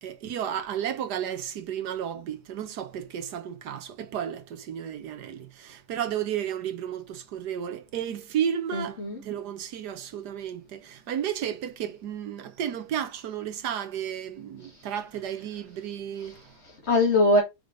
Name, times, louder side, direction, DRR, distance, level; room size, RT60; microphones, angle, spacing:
voice 1, 0.0-16.4, right 9 dB, 80° right, 1.6 m, -33 dB
voice 2, 8.7-9.2 14.6-14.7 16.2-17.4, left 2 dB, 40° left, 2.0 m, -24 dB
5.6 x 5.2 x 5.0 m
omnidirectional pair, 1.7 m